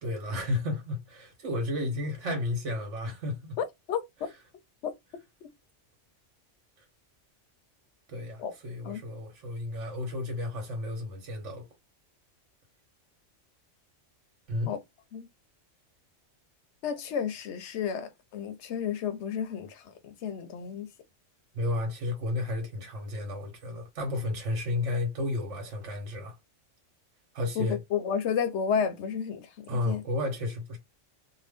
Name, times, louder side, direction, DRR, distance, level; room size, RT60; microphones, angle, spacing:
voice 1, 0.0-3.6 8.1-11.6 14.5-14.7 21.5-26.3 27.3-27.8 29.7-30.8, left 2 dB, 75° right, 1.3 m, -32 dB
voice 2, 3.6-4.3 4.8-5.5 8.4-8.5 8.8-9.0 14.6-14.8 15.1-15.3 16.8-20.9 27.6-30.0, left 7 dB, 70° left, 0.8 m, -32 dB
2.7 x 2.2 x 3.4 m
omnidirectional pair, 1.3 m